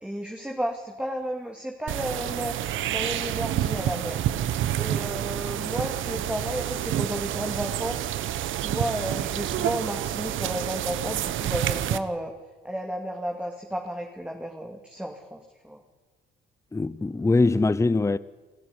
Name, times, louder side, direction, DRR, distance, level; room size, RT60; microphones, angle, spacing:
voice 1, 0.0-4.2 4.8-8.1 8.5-12.3 12.6-15.8, equal, 5° right, 2.5 m, -33 dB
sound 1, 1.9-12.0, right 11 dB, 80° right, 1.2 m, -28 dB
voice 2, 16.7-18.2, left 3 dB, 15° left, 0.7 m, -22 dB
27.0 x 13.5 x 9.8 m
cardioid pair, 90°, 20 cm